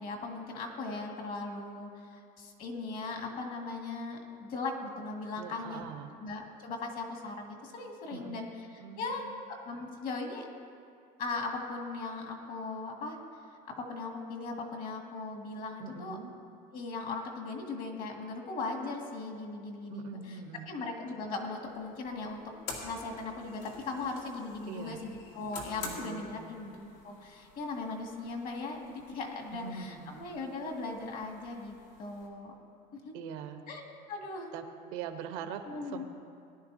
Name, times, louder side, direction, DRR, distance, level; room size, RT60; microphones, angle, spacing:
voice 1, 0.0-5.9 6.2-9.3 9.7-10.5 11.2-13.2 13.8-16.2 16.7-20.4 20.7-22.4 22.8-31.7 32.0-32.5 32.9-33.1 33.7-34.5 35.7-36.0, left 3 dB, 50° left, 2 dB, 1.9 m, -38 dB
voice 2, 5.4-6.1 8.1-8.4 8.8-9.4 15.8-16.3 19.9-20.7 24.7-25.0 25.8-26.5 29.5-30.2 33.1-33.6 34.5-34.6 34.9-35.6 35.9-36.0, right 7 dB, 90° right, 7 dB, 1.0 m, -42 dB
sound 1, 21.7-32.3, left 4 dB, 80° left, 2.5 m, -49 dB
19.5 x 11.0 x 2.7 m, 2.4 s
cardioid pair, 140°, 18 cm